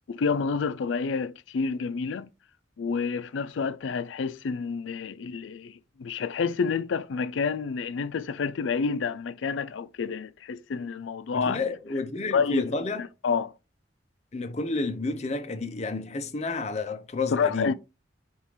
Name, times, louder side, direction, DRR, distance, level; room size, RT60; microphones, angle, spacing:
voice 1, 0.1-2.3 2.8-11.6 12.3-12.7 13.2-13.5 17.3-17.7, left 5 dB, 85° left, 0.4 m, -29 dB
voice 2, 11.3-13.1 14.3-17.7, left 3 dB, 35° left, 0.6 m, -30 dB
5.3 x 2.4 x 3.1 m
head